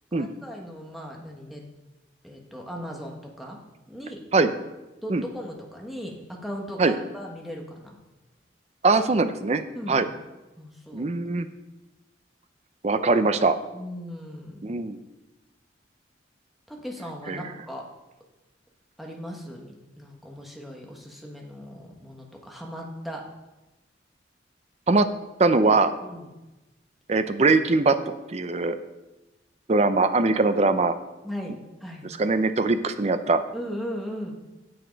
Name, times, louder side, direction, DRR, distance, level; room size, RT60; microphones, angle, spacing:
voice 1, 0.1-1.6 2.2-3.6 3.9-4.2 5.0-8.0 9.7-10.0 10.6-11.1 13.7-14.7 16.7-17.9 19.0-23.3 26.0-26.3 31.2-32.1 32.6-32.7 33.5-34.3, equal, ahead, -1 dB, 1.2 m, -38 dB
voice 2, 8.8-9.6 9.9-10.1 10.9-11.5 12.8-13.6 14.6-15.0 17.3-17.4 24.9-25.1 25.4-25.9 27.1-28.0 28.3-28.8 29.7-30.9 32.2-33.4, right 3 dB, 35° right, 10 dB, 0.5 m, -21 dB
8.0 x 7.8 x 5.2 m, 1.1 s
head